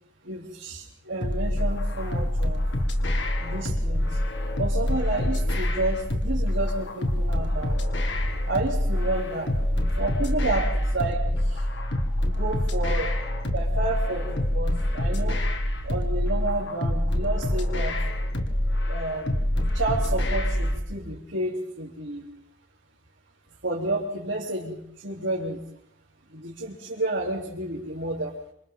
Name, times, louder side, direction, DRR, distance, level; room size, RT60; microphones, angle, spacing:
voice 1, 0.2-2.7 3.4-4.2 4.6-7.8 8.2-9.5 10.0-11.7 12.2-15.4 15.8-18.0 18.9-19.4 19.7-22.3 23.6-25.6 26.3-28.3, right 2 dB, 65° right, -6 dB, 3.5 m, -31 dB
sound 1, 1.2-20.8, left 1 dB, 60° left, 2.1 m, -26 dB
26.5 x 26.0 x 3.8 m, 0.70 s
head